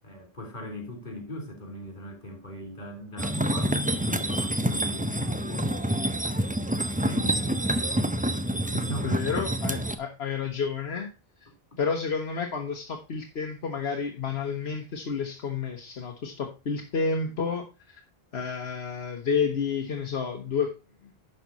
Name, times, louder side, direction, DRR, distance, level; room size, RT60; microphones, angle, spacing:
voice 1, 0.0-5.7 6.5-6.7 7.0-8.0 8.3-9.8, equal, 50° left, 3.6 m, -40 dB
sound 1, 3.2-10.0, right 1 dB, 10° right, 0.5 m, -27 dB
voice 2, 9.0-11.1 11.8-18.0 18.3-20.7, left 5 dB, 80° left, 1.3 m, -30 dB
11.0 x 5.7 x 4.0 m
omnidirectional pair, 1.1 m